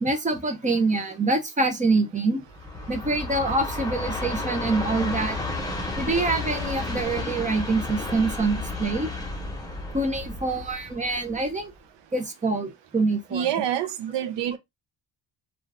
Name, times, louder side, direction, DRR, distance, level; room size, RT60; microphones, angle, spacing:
voice 1, 0.0-2.4 2.9-5.4 6.0-9.1 9.9-11.7 12.1-13.5, right 3 dB, 15° right, 0.6 m, -25 dB
Train, 2.5-11.7, left 2 dB, 10° left, 0.9 m, -32 dB
voice 2, 13.3-14.6, right 10 dB, 70° right, 0.6 m, -27 dB
2.5 x 2.3 x 3.3 m
cardioid pair, 115°, 45 cm